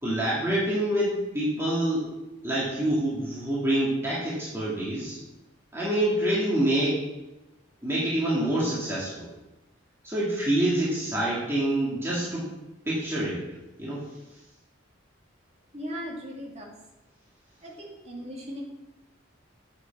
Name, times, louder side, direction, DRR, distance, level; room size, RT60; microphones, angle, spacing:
voice 1, 0.0-2.1 2.4-5.2 5.7-7.0 7.8-9.3 10.0-12.5 12.9-13.4 13.8-14.0, right 1 dB, 15° right, -8 dB, 2.3 m, -26 dB
voice 2, 15.7-16.7 17.6-18.7, equal, 30° right, -2 dB, 2.4 m, -38 dB
8.9 x 7.2 x 6.0 m, 1.0 s
head